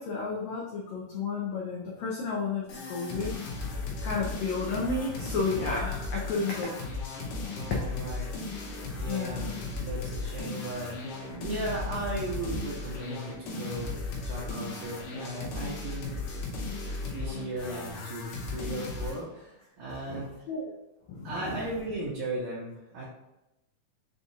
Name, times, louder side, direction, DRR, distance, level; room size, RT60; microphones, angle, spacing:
voice 1, 0.0-3.3 3.6-7.0 9.1-9.5 20.1-20.6 21.1-21.6, left 4 dB, 90° left, -3 dB, 1.5 m, -32 dB
sound 1, 2.7-19.2, left 3 dB, 70° left, 2.1 m, -36 dB
voice 2, 7.5-8.3 9.0-10.9 11.4-13.9 14.2-16.2 16.8-20.3 21.2-23.1, right 2 dB, 70° right, -8 dB, 1.9 m, -36 dB
5.9 x 2.4 x 2.7 m, 0.91 s
omnidirectional pair, 4.0 m